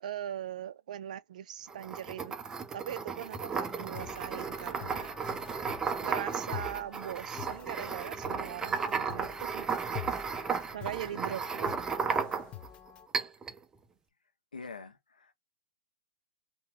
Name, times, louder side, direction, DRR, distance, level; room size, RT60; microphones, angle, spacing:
voice 1, 0.0-2.4 2.7-5.1 6.0-9.7 10.7-11.8, right 10 dB, 60° right, 0.5 m, -40 dB
sound 1, 1.7-12.7 13.1-13.6, right 5 dB, 15° right, 0.7 m, -34 dB
sound 2, 3.5-13.1, left 11 dB, 25° left, 0.6 m, -47 dB
voice 2, 14.5-15.3, left 4 dB, 85° left, 1.3 m, -45 dB
4.7 x 2.9 x 2.4 m
hypercardioid pair, 120°, 4 cm